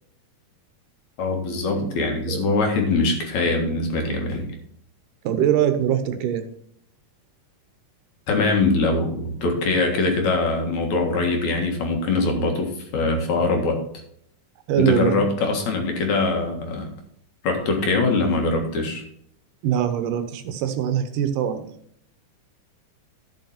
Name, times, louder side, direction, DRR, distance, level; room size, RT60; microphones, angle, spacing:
voice 1, 1.2-4.5 8.3-13.8 14.8-16.9 17.4-19.0, left 3 dB, 60° left, 3 dB, 2.9 m, -22 dB
voice 2, 5.2-6.5 14.7-15.3 19.6-21.8, right 9 dB, 80° right, 9 dB, 2.5 m, -22 dB
12.0 x 6.7 x 4.3 m, 0.67 s
omnidirectional pair, 3.8 m